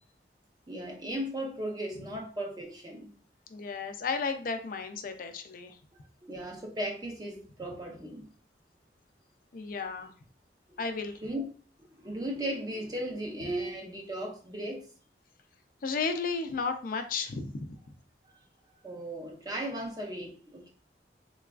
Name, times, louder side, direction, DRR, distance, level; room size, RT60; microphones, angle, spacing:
voice 1, 0.7-3.1 6.2-8.3 11.2-11.5 11.8-14.8 18.2-18.3 18.8-20.7, right 1 dB, 20° right, 1 dB, 0.6 m, -36 dB
voice 2, 3.5-5.8 9.5-10.1 10.8-11.2 15.8-17.7, left 4 dB, 50° left, 7 dB, 0.4 m, -33 dB
4.0 x 2.3 x 2.3 m, 0.40 s
head